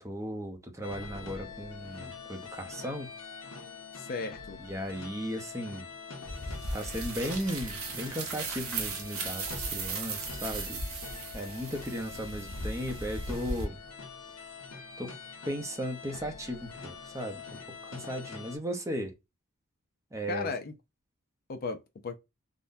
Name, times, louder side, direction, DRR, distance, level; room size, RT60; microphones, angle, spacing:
voice 1, 0.0-3.1 4.6-5.9 6.7-10.8 11.3-13.8 15.0-15.1 15.5-19.2 20.1-20.5, equal, 15° right, 0.6 m, -36 dB
sound 1, 0.8-18.6, left 5 dB, 75° left, 1.0 m, -45 dB
voice 2, 3.9-4.6 20.3-20.7 21.5-22.2, left 4 dB, 45° left, 0.5 m, -36 dB
sound 2, 6.2-13.6, right 3 dB, 80° right, 0.8 m, -37 dB
3.7 x 2.1 x 2.6 m
head